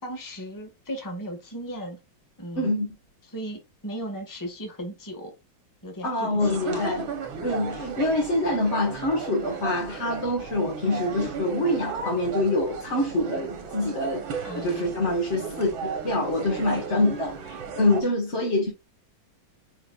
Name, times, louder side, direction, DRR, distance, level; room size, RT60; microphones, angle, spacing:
voice 1, 0.0-2.0 2.4-2.7 3.3-5.3 5.8-6.9 14.4-15.1 16.4-17.0, equal, 10° left, 1.7 m, -37 dB
voice 2, 2.6-2.9 6.0-7.1 7.4-18.7, left 1 dB, 35° left, 1.9 m, -25 dB
sound 1, 6.4-18.0, right 5 dB, 70° right, 2.1 m, -35 dB
8.9 x 4.7 x 2.5 m
omnidirectional pair, 2.2 m